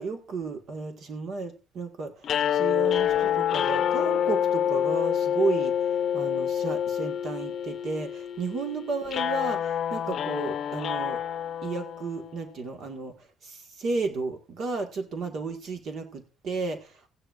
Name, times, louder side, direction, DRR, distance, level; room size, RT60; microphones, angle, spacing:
voice 1, 0.0-11.2 11.6-17.1, right 4 dB, 55° right, 1.7 m, -33 dB
sound 1, 2.2-12.5, left 9 dB, 55° left, 0.7 m, -27 dB
15.5 x 10.0 x 2.5 m
cardioid pair, 125°, 0 cm